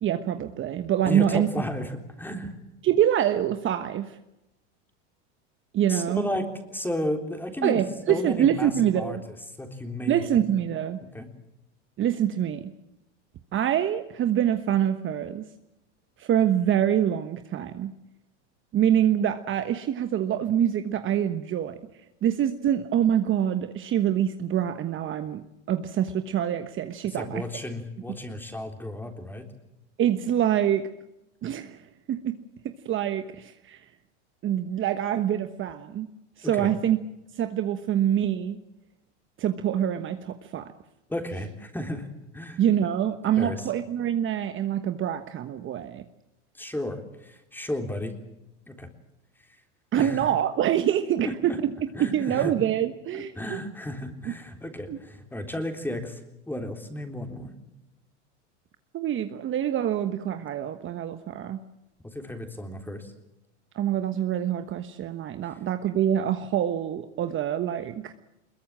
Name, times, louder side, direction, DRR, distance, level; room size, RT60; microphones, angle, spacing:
voice 1, 0.0-1.5 2.8-4.2 5.7-6.3 7.6-9.2 10.0-11.0 12.0-12.7 13.5-15.4 16.2-17.9 18.7-21.8 22.2-27.4 30.0-30.8 31.4-31.8 32.1-32.3 32.8-33.8 34.4-36.1 36.4-37.0 37.3-38.6 39.4-40.7 42.6-46.0 49.9-51.7 52.0-53.6 54.9-55.0 58.9-61.6 63.7-68.1, right 10 dB, 35° right, 9 dB, 1.3 m, -25 dB
voice 2, 1.0-2.5 5.9-7.8 8.1-9.2 9.6-10.2 11.0-11.3 27.1-29.5 36.4-36.7 41.1-42.1 42.3-42.6 43.4-43.7 46.5-48.1 48.7-48.9 50.0-50.3 51.2-51.6 51.9-52.5 53.1-57.5 62.0-63.1, left 1 dB, 5° left, 5 dB, 3.7 m, -33 dB
22.5 x 22.0 x 7.5 m, 0.91 s
supercardioid pair, 110°, 35 cm